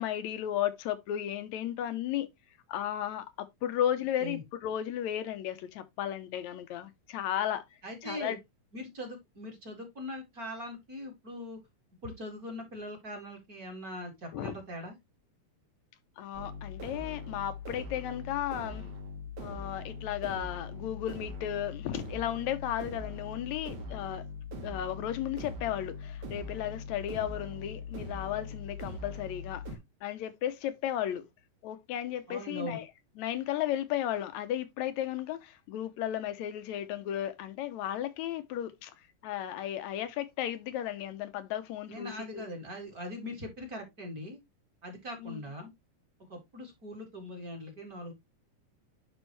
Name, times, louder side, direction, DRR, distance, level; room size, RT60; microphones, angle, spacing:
voice 1, 0.0-2.3 2.7-7.6 8.0-8.4 14.3-14.5 16.2-18.9 19.4-24.2 24.6-29.6 30.0-31.2 31.6-32.9 33.2-38.9 39.2-42.5 45.2-45.4, left 11 dB, 75° left, 2.0 m, -34 dB
voice 2, 7.8-8.4 8.7-11.6 12.0-15.0 32.3-32.8 41.9-44.4 44.8-45.7 46.3-48.1, equal, 35° right, 2.1 m, -41 dB
sound 1, 16.3-29.8, left 3 dB, 55° right, 3.0 m, -41 dB
10.5 x 3.6 x 3.1 m
omnidirectional pair, 3.5 m